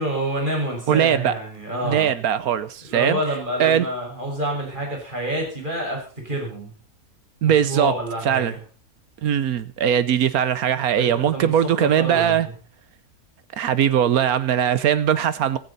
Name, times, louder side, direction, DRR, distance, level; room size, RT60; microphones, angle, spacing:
voice 1, 0.0-2.1 2.8-6.7 7.4-8.6 11.0-12.5, right 1 dB, 30° right, 5.8 m, -28 dB
voice 2, 0.9-1.3 1.8-3.2 3.6-3.9 7.4-7.9 8.2-8.5 9.2-12.5 13.6-15.6, right 9 dB, 75° right, 1.4 m, -20 dB
16.0 x 14.5 x 4.1 m
omnidirectional pair, 1.6 m